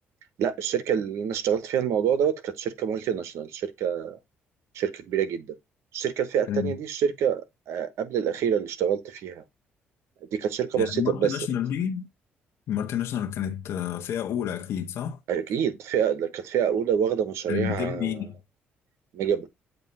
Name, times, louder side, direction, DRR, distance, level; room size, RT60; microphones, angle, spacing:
voice 1, 0.4-4.2 4.7-5.5 5.9-9.4 10.3-11.5 15.3-18.3 19.1-19.5, right 8 dB, 75° right, 1.1 m, -27 dB
voice 2, 10.7-12.1 12.7-15.2 17.5-18.3, left 9 dB, 70° left, 1.0 m, -29 dB
8.1 x 2.8 x 5.3 m
cardioid pair, 85°, 5 cm